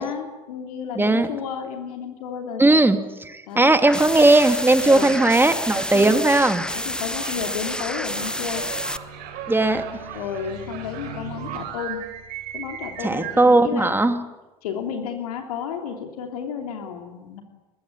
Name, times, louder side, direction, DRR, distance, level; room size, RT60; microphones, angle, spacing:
voice 1, 0.0-2.8 3.5-3.7 4.8-5.1 5.9-6.2 6.7-8.6 10.1-12.0 12.5-14.1 14.6-17.4, left 7 dB, 75° left, 4 dB, 2.9 m, -32 dB
voice 2, 1.0-1.3 2.6-3.0 3.3-6.6 9.5-9.8 13.0-14.2, right 2 dB, 10° right, 8 dB, 2.5 m, -17 dB
sound 1, 3.7-13.4, right 9 dB, 60° right, 4.5 m, -38 dB
sound 2, 3.8-9.0, left 1 dB, 5° left, 1.1 m, -29 dB
sound 3, 6.7-11.6, right 3 dB, 85° right, 4.2 m, -42 dB
24.5 x 21.5 x 9.9 m, 1.1 s
figure-of-eight pair, 60°, 20 cm